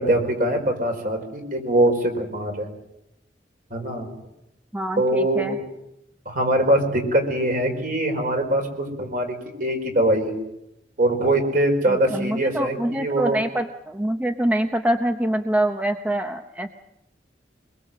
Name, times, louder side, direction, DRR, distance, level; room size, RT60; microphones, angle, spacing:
voice 1, 0.0-2.7 3.7-4.1 5.0-5.6 6.2-10.4 11.0-13.4, right 1 dB, 50° right, 4 dB, 4.9 m, -22 dB
voice 2, 4.7-5.6 11.9-16.7, right 1 dB, 10° right, 5 dB, 0.9 m, -25 dB
24.5 x 22.0 x 7.6 m, 0.86 s
head